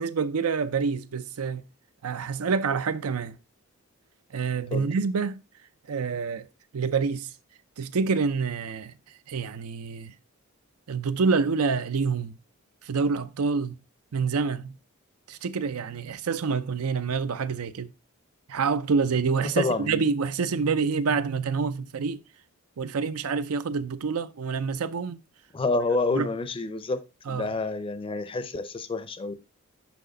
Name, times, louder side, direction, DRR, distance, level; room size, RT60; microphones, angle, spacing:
voice 1, 0.0-1.6 2.0-3.4 4.3-5.4 5.9-6.5 6.7-7.3 7.8-8.9 9.3-10.1 10.9-12.4 12.8-13.8 14.1-14.8 15.3-17.9 18.5-22.2 22.8-25.2 26.1-26.3 27.3-27.5, right 5 dB, 90° right, 0.5 m, -27 dB
voice 2, 19.4-20.0 25.5-29.3, left 3 dB, 25° left, 0.5 m, -28 dB
6.1 x 5.6 x 3.8 m
head